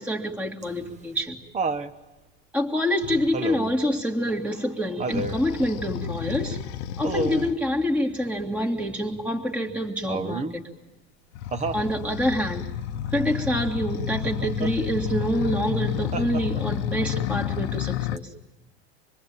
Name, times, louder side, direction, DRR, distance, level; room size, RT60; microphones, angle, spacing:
voice 1, 0.0-1.4 2.5-6.6 7.0-10.6 11.7-12.7 13.1-18.3, equal, 5° right, 0 dB, 2.1 m, -26 dB
Laughter, 0.6-1.9 3.3-3.8 5.0-5.4 7.0-7.6 10.1-10.6 11.5-11.9 14.2-14.7 16.1-16.8 18.2-18.3, right 3 dB, 20° right, 1.1 m, -30 dB
sound 1, 3.0-3.3 5.1-7.5 11.3-18.2, left 10 dB, 80° left, 1.0 m, -31 dB
26.5 x 21.5 x 8.8 m, 1.2 s
supercardioid pair, 130°, 33 cm